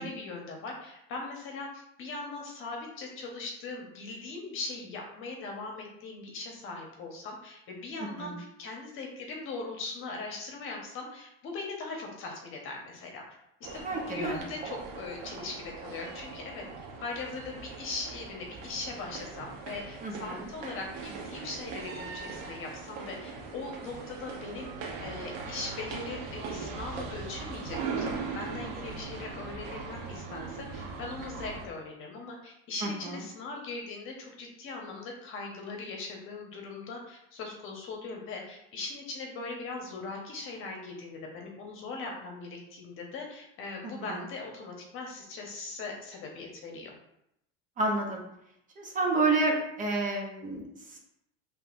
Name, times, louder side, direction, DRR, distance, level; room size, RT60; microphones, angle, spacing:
voice 1, 0.0-13.2 13.7-16.6 17.0-24.7 25.0-46.9, left 3 dB, 45° left, 0 dB, 1.2 m, -40 dB
voice 2, 8.0-8.4 13.8-14.4 20.0-20.5 32.8-33.2 43.8-44.2 47.8-48.2 48.8-51.0, right 3 dB, 25° right, 0 dB, 0.9 m, -30 dB
sound 1, 13.6-31.7, right 4 dB, 75° right, 1.0 m, -40 dB
5.5 x 3.3 x 2.6 m, 0.79 s
supercardioid pair, 140°, 30 cm